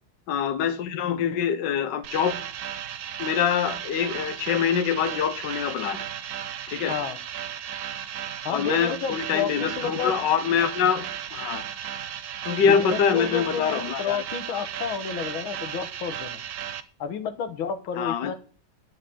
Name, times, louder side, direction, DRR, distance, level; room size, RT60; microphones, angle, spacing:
voice 1, 0.3-2.4 3.2-6.0 6.7-6.9 8.5-11.6 12.4-14.2 14.5-14.7 18.0-18.3, left 7 dB, 65° left, 1.6 m, -25 dB
sound 1, 2.0-16.8, right 9 dB, 60° right, 1.1 m, -35 dB
voice 2, 8.5-10.2 12.7-16.4 17.0-18.3, left 7 dB, 90° left, 2.0 m, -30 dB
10.5 x 7.8 x 8.5 m
omnidirectional pair, 2.2 m